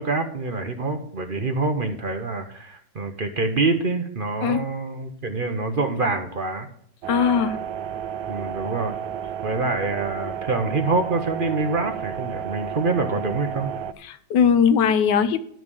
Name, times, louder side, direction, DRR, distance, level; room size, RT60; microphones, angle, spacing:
voice 1, 0.0-6.7 8.3-8.9 9.4-13.7, right 3 dB, 40° right, 6 dB, 0.8 m, -26 dB
sound 1, 7.0-13.9, right 9 dB, 75° right, 1.2 m, -32 dB
voice 2, 7.1-7.6 14.0-15.4, left 7 dB, 75° left, 13 dB, 1.4 m, -19 dB
11.0 x 6.2 x 6.7 m, 0.66 s
omnidirectional pair, 1.9 m